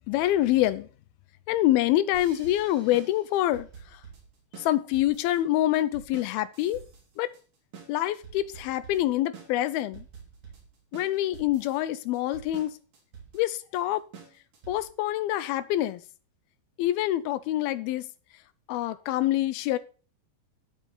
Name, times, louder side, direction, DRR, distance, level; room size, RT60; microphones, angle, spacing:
voice 1, 0.1-0.9 1.5-4.0 4.6-6.8 7.2-7.3 7.9-10.1 10.9-12.8 13.3-14.0 14.7-16.0 16.8-18.1 18.7-19.8, left 14 dB, 85° left, 2.6 m, -26 dB
sound 1, 2.1-15.0, right 6 dB, 50° right, 4.0 m, -48 dB
11.5 x 8.4 x 4.4 m
omnidirectional pair, 4.3 m